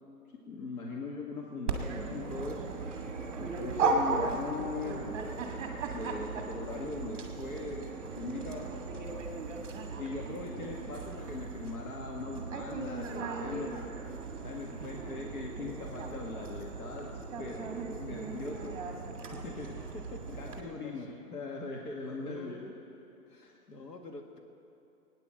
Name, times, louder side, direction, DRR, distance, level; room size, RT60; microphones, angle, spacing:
voice 1, 0.5-2.6 3.4-5.2 5.9-7.9 8.2-9.2 10.0-13.9 14.4-17.7 18.0-18.7 19.2-19.7 20.4-22.6 23.4-23.6, left 3 dB, 65° left, -2 dB, 2.1 m, -40 dB
Dog, 1.7-20.6, right 4 dB, 20° right, 1.4 m, -37 dB
voice 2, 14.8-15.2 17.4-17.7 19.9-21.4 22.2-22.8 23.3-24.4, left 2 dB, 90° left, 3 dB, 2.0 m, -48 dB
19.0 x 9.6 x 7.8 m, 2.8 s
hypercardioid pair, 170°, 47 cm